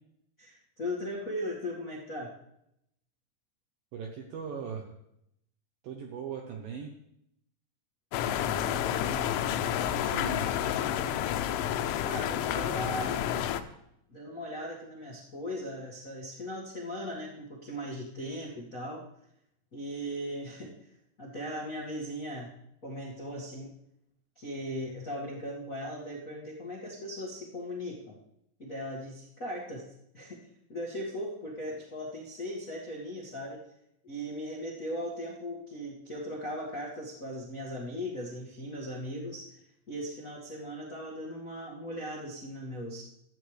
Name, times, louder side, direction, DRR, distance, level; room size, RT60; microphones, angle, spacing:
voice 1, 0.4-2.3 12.0-13.2 14.1-19.0 19.7-20.7 21.2-22.5 22.8-23.7 24.3-28.2 28.6-29.8 30.1-30.4 30.7-33.6 34.0-39.6 39.9-43.0, equal, 65° left, -5 dB, 0.8 m, -38 dB
voice 2, 3.9-4.9 5.8-6.9 8.4-9.4 9.9-10.5, right 7 dB, 75° right, 2 dB, 2.1 m, -40 dB
sound 1, 8.1-13.6, left 10 dB, 90° left, 3.1 m, -30 dB
16.0 x 12.5 x 3.4 m, 0.78 s
omnidirectional pair, 5.4 m